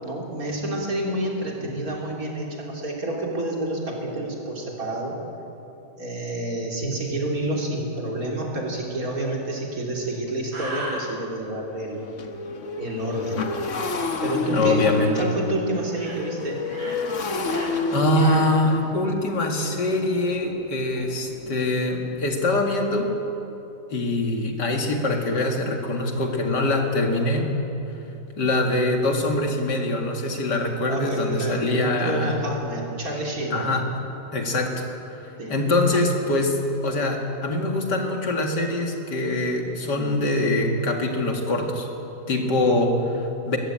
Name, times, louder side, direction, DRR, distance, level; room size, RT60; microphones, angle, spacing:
voice 1, 0.0-5.2 6.0-12.0 12.8-13.5 14.2-14.9 15.2-16.6 30.9-33.7 35.4-35.6, right 1 dB, 55° right, -2 dB, 3.9 m, -29 dB
Motorcycle, 9.6-9.7 10.1-10.3 10.6-22.2, left 3 dB, 50° left, 1.5 m, -31 dB
sound 1, 10.5-11.0 15.0-15.3 15.8-16.2 16.6-17.0 17.4-17.7 18.1-18.5, right 1 dB, 80° right, 4.5 m, -35 dB
voice 2, 14.5-15.3 17.9-23.1 23.9-27.6 28.4-32.3 33.5-33.9 34.3-34.9 35.1-35.2 35.5-41.9 42.3-43.6, left 2 dB, 85° left, 2 dB, 2.8 m, -23 dB
21.5 x 15.0 x 8.8 m, 2.9 s
omnidirectional pair, 1.8 m